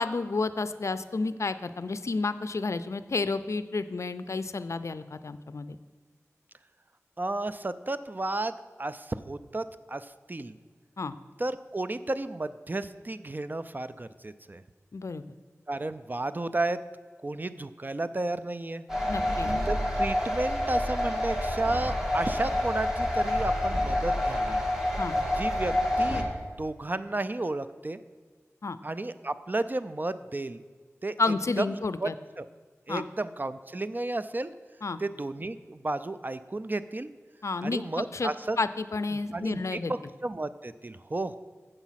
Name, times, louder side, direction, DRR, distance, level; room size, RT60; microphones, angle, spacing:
voice 1, 0.0-5.8 11.0-11.1 14.9-15.2 19.1-19.5 25.0-25.2 28.6-28.8 31.2-32.1 32.9-33.1 34.8-35.0 37.4-37.8 38.1-38.3 38.6-39.9, left 3 dB, 65° left, 13 dB, 0.4 m, -30 dB
voice 2, 7.2-10.6 11.4-14.6 15.7-16.8 17.2-18.9 19.7-24.6 25.3-26.2 26.6-28.0 28.8-30.6 31.0-31.2 31.6-31.7 32.0-32.1 32.4-32.5 32.9-34.5 35.0-37.1 37.6-38.6 39.1-41.4, right 2 dB, 35° right, 13 dB, 0.4 m, -32 dB
sound 1, 18.9-26.2, left 1 dB, 5° right, 2.0 m, -28 dB
7.8 x 7.1 x 5.7 m, 1.5 s
cardioid pair, 40°, 5 cm